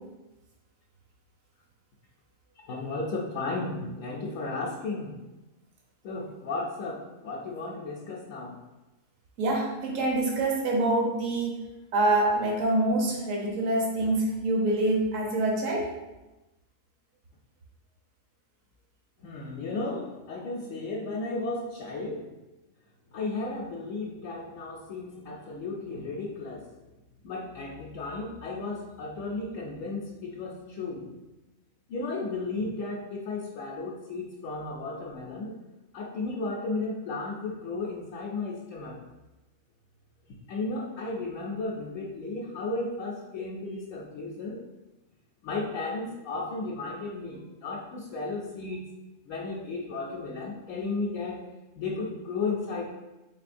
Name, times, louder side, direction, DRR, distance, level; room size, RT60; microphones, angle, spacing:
voice 1, 2.7-5.2 6.0-8.6 19.2-22.3 23.1-26.7 27.2-31.1 31.9-35.6 35.9-39.0 40.5-44.6 45.4-48.8 49.3-51.5 51.8-52.8, left 3 dB, 75° left, -4 dB, 1.0 m, -34 dB
voice 2, 9.4-11.6 11.9-15.9, right 2 dB, 70° right, -1 dB, 1.2 m, -26 dB
4.5 x 3.4 x 2.5 m, 1.0 s
omnidirectional pair, 1.4 m